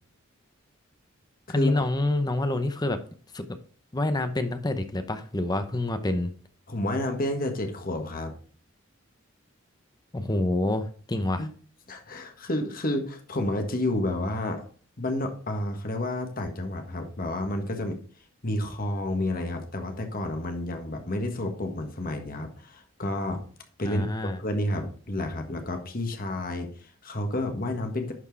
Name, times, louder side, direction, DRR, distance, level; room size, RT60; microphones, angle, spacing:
voice 1, 1.5-3.0 3.3-3.5 3.9-6.3 10.1-11.4 23.8-24.4, left 2 dB, 20° left, 9 dB, 0.7 m, -27 dB
voice 2, 6.7-8.3 11.4-11.5 11.9-14.7 15.0-18.0 18.4-23.4 23.8-24.1 24.4-28.1, left 1 dB, 45° left, 5 dB, 1.5 m, -30 dB
11.0 x 4.5 x 4.6 m, 0.43 s
head